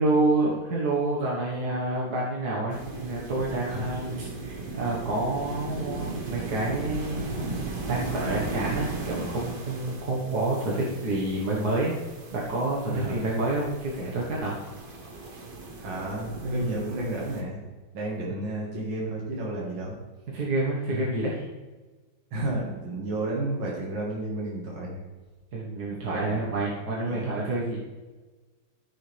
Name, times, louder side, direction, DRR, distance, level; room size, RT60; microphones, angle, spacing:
voice 1, 0.0-11.9 12.3-14.5 20.3-21.4 25.5-27.8, right 2 dB, 55° right, -4 dB, 1.9 m, -28 dB
sound 1, 2.7-17.4, right 3 dB, 30° right, 1.1 m, -37 dB
voice 2, 12.9-13.3 15.8-17.6 17.9-20.0 20.9-21.0 22.3-25.0 26.1-26.4 27.0-27.2, right 2 dB, 70° right, -4 dB, 2.6 m, -31 dB
14.0 x 6.8 x 3.4 m, 1.3 s
omnidirectional pair, 2.2 m